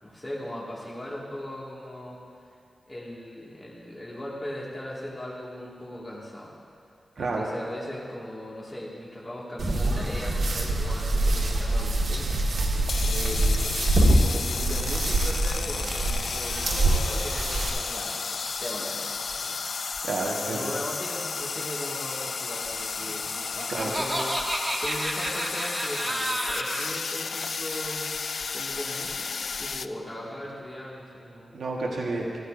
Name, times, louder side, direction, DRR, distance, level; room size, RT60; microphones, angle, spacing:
voice 1, 0.0-2.2 2.9-6.6 7.2-12.6 13.0-20.1 20.4-23.3 23.5-28.1 28.5-31.6, left 1 dB, 20° left, -6 dB, 2.0 m, -38 dB
voice 2, 7.2-7.5 20.0-20.7 23.7-23.9 31.5-32.4, right 3 dB, 85° right, -2 dB, 1.4 m, -30 dB
sound 1, 9.6-17.7, right 1 dB, 70° right, 1.6 m, -25 dB
sound 2, 12.9-29.9, left 5 dB, 60° left, 0.3 m, -33 dB
Laughter, 23.1-26.9, right 1 dB, 15° right, 1.1 m, -31 dB
15.5 x 14.5 x 2.6 m, 2.5 s
wide cardioid pair, 130°, 0 cm